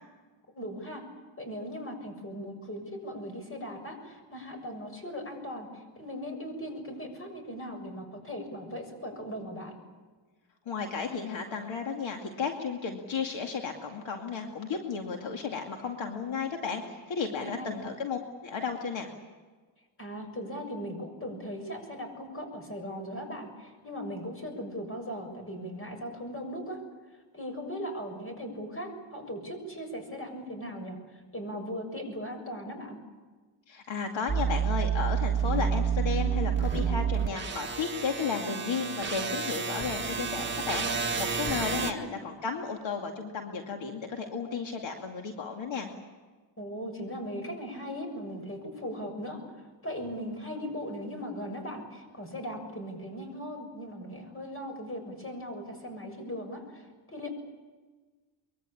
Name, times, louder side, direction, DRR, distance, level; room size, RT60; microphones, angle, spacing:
voice 1, 0.5-1.1 1.4-9.8 17.4-17.6 20.0-26.8 27.3-31.0 31.3-33.0 41.8-42.1 46.6-49.4 49.8-57.3, equal, 25° left, 6 dB, 6.7 m, -38 dB
voice 2, 10.7-19.1 33.7-45.9, left 5 dB, 70° left, 3 dB, 2.5 m, -34 dB
sound 1, 34.3-41.9, right 7 dB, 25° right, 1.7 m, -29 dB
24.0 x 23.0 x 8.7 m, 1.4 s
cardioid pair, 130°, 48 cm